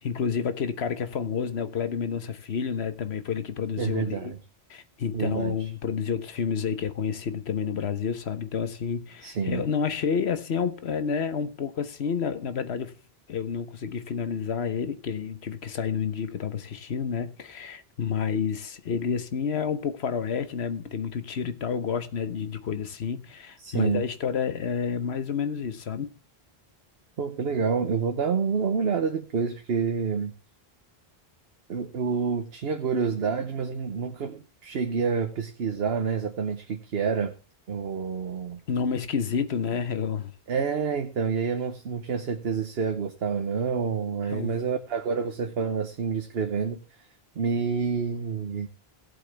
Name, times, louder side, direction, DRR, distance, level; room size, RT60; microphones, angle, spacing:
voice 1, 0.0-4.3 4.7-12.9 13.3-26.1 38.7-40.3 44.3-44.6, left 6 dB, 90° left, 1.3 m, -29 dB
voice 2, 3.8-4.4 5.1-5.5 9.2-9.6 23.6-24.0 27.2-30.3 31.7-37.3 37.7-38.6 40.5-46.8 47.3-48.7, right 6 dB, 75° right, 1.2 m, -28 dB
17.0 x 7.9 x 3.3 m
omnidirectional pair, 1.0 m